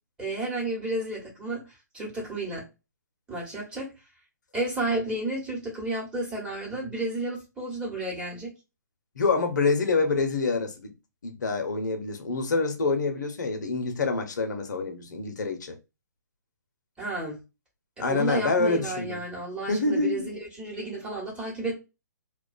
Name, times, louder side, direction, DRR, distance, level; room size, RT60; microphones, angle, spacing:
voice 1, 0.2-2.7 3.3-3.9 4.5-8.5 17.0-17.4 18.0-21.8, right 2 dB, 10° right, 1.0 m, -32 dB
voice 2, 9.2-10.9 11.2-15.8 18.0-19.2 19.7-20.3, left 3 dB, 70° left, 0.7 m, -26 dB
2.4 x 2.2 x 2.4 m
figure-of-eight pair, 130°, 10 cm